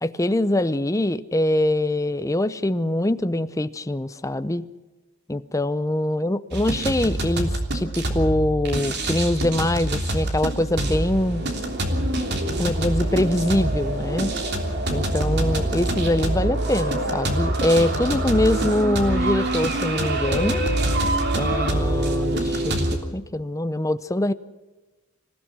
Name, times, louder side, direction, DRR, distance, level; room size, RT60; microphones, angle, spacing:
voice 1, 0.0-4.6 5.3-11.4 12.6-14.4 14.9-20.6 21.3-24.3, left 1 dB, 15° left, 13 dB, 0.7 m, -23 dB
sound 1, 6.5-23.0, right 1 dB, 55° right, 3.3 m, -25 dB
26.5 x 16.5 x 6.2 m, 1.1 s
head